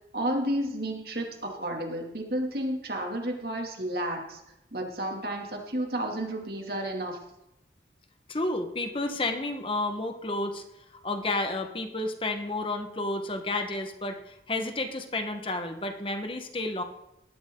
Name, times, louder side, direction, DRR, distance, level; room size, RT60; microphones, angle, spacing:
voice 1, 0.1-4.4 4.7-7.2, right 1 dB, 60° right, 1 dB, 2.8 m, -31 dB
voice 2, 8.3-10.6 11.0-16.8, left 2 dB, 30° left, 6 dB, 1.4 m, -31 dB
19.0 x 13.0 x 3.9 m, 0.88 s
head